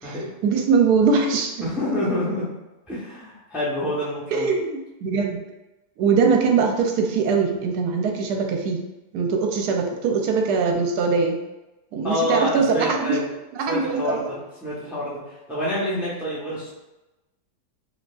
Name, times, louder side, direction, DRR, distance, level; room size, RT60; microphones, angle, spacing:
voice 1, 0.4-1.5 4.3-5.4 6.0-8.8 9.1-11.4 11.9-13.2 13.6-14.3, right 5 dB, 75° right, 3 dB, 1.1 m, -21 dB
voice 2, 1.6-2.5 2.9-4.5 12.0-13.3 13.7-16.7, left 1 dB, ahead, -8 dB, 0.7 m, -27 dB
4.8 x 2.9 x 2.3 m, 1.0 s
omnidirectional pair, 1.8 m